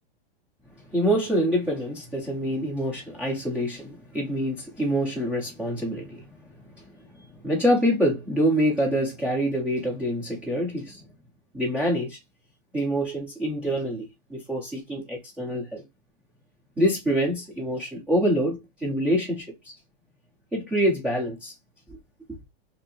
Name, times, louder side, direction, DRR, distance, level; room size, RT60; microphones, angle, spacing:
voice 1, 0.9-6.3 7.4-11.0 11.5-12.2 12.7-15.8 16.8-19.7 20.5-21.5, equal, 5° right, 0.4 m, -26 dB
2.7 x 2.5 x 4.0 m
supercardioid pair, 165°, 32 cm